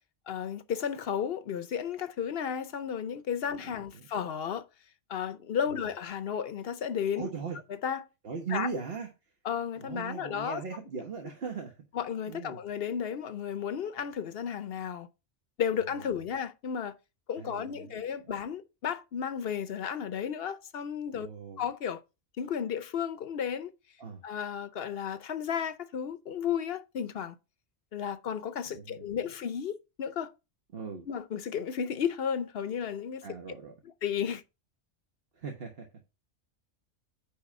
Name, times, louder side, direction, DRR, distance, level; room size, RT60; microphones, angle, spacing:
voice 1, 0.3-4.7 5.1-7.3 7.8-8.1 8.5-8.7 9.4-10.6 11.9-15.1 15.6-17.0 17.3-21.3 21.6-22.0 22.4-23.7 24.2-27.4 27.9-30.3 31.1-33.3 33.8-34.4, left 8 dB, 60° left, 0.9 m, -33 dB
voice 2, 3.6-4.1 5.7-5.8 7.1-7.6 8.2-9.1 9.8-11.8 12.3-12.6 16.1-16.2 17.4-18.0 21.1-21.6 24.0-24.2 28.7-29.1 30.7-31.1 33.2-33.7 35.3-35.9, right 5 dB, 55° right, 1.4 m, -39 dB
9.5 x 3.7 x 5.3 m
omnidirectional pair, 1.2 m